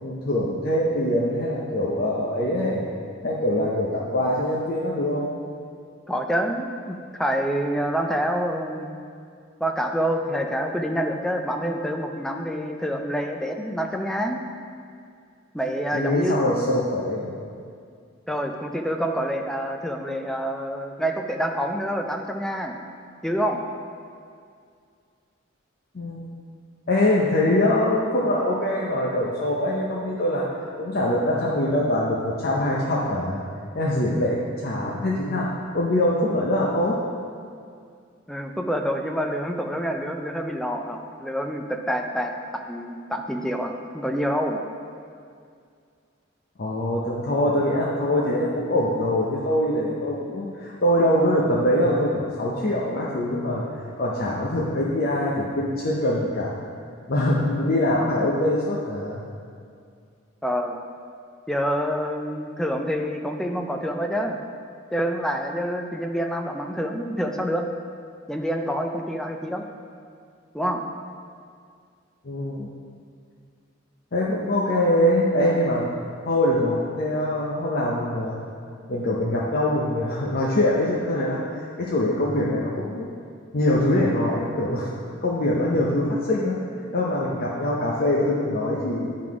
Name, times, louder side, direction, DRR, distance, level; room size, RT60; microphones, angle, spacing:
voice 1, 0.0-2.9 3.2-5.4 15.9-17.3 25.9-26.2 26.9-30.4 30.8-33.4 33.7-35.5 35.7-37.0 46.6-53.6 54.0-56.6 57.1-59.2 72.2-72.7 74.1-75.8 76.3-78.4 78.9-81.4 81.8-83.0 83.5-84.9 85.2-86.6 86.9-89.1, left 1 dB, 50° left, -5 dB, 0.6 m, -23 dB
voice 2, 6.1-9.0 9.6-14.4 15.5-16.4 18.3-22.8 23.2-23.6 38.3-44.6 60.4-60.8 61.5-64.4 64.9-67.7 68.3-69.6 70.5-70.8, equal, 5° left, 3 dB, 0.4 m, -27 dB
9.5 x 3.8 x 4.7 m, 2.3 s
head